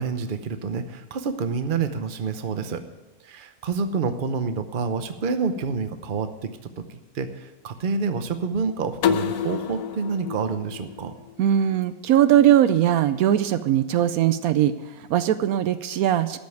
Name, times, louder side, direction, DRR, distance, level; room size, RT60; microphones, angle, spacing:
voice 1, 0.0-2.8 3.2-6.3 6.9-11.1, right 5 dB, 40° right, 8 dB, 0.8 m, -28 dB
sound 1, 9.0-11.8, left 8 dB, 85° left, 1.2 m, -28 dB
voice 2, 11.4-16.4, right 11 dB, 75° right, 12 dB, 1.0 m, -20 dB
13.0 x 5.4 x 9.3 m, 1.1 s
omnidirectional pair, 1.6 m